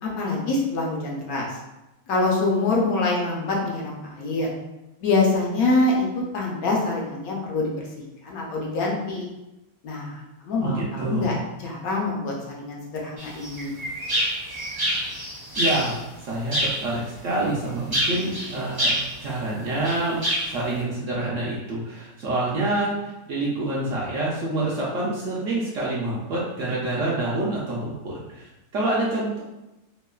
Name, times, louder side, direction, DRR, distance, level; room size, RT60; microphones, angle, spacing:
voice 1, 0.0-1.6 2.1-4.5 5.0-6.1 6.3-7.7 8.2-9.2 9.8-13.7, left 3 dB, 75° left, -2 dB, 1.0 m, -25 dB
voice 2, 10.6-11.4 15.6-18.9 19.2-20.2 20.5-29.4, right 2 dB, 70° right, -5 dB, 0.8 m, -27 dB
sound 1, 13.2-16.0 16.5-16.9 17.9-19.2 19.8-20.5, equal, 25° right, 0.5 m, -26 dB
3.0 x 2.0 x 2.2 m, 0.96 s
omnidirectional pair, 1.7 m